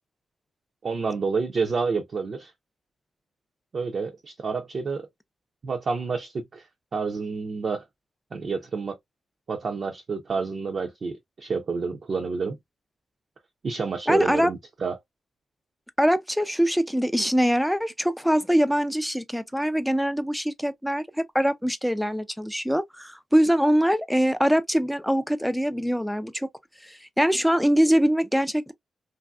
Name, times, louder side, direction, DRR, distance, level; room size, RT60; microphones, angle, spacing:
voice 1, 0.8-2.5 3.7-5.1 5.6-6.6 6.9-7.8 8.3-9.0 9.5-12.6 13.6-15.0, right 4 dB, 50° right, 0.6 m, -29 dB
voice 2, 14.1-14.5 16.0-26.5 26.8-28.7, equal, ahead, 0.4 m, -23 dB
3.1 x 2.6 x 2.2 m
cardioid pair, 100°, 0 cm